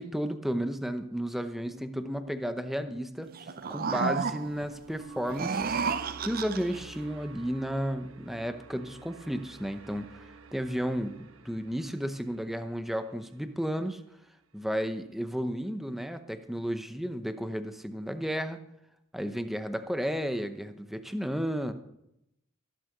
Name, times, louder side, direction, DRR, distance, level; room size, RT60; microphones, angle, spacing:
voice 1, 0.0-3.3 3.7-5.8 6.2-10.2 10.5-14.0 14.5-18.6 19.1-21.7, equal, ahead, 9 dB, 0.8 m, -33 dB
sound 1, 1.7-13.9, right 3 dB, 70° right, 1.1 m, -50 dB
sound 2, 3.3-4.7 5.2-6.8, right 5 dB, 45° right, 0.5 m, -31 dB
15.0 x 7.5 x 6.7 m, 0.83 s
head